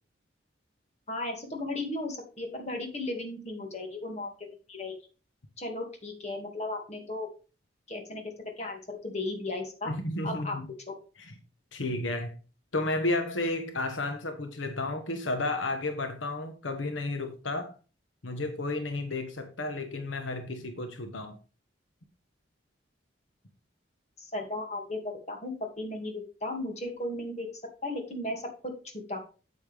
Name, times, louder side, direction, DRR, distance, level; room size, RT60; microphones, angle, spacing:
voice 1, 1.1-5.0 5.6-7.3 7.9-8.2 8.6-9.9 10.2-10.6 10.9-11.0 24.2-27.5 27.8-28.7 29.1-29.2, left 2 dB, 35° left, 2 dB, 2.3 m, -35 dB
voice 2, 9.9-10.7 11.2-11.3 11.7-12.3 12.7-17.7 18.2-21.4, left 2 dB, 80° left, 6 dB, 1.2 m, -32 dB
8.5 x 8.5 x 3.5 m, 0.35 s
head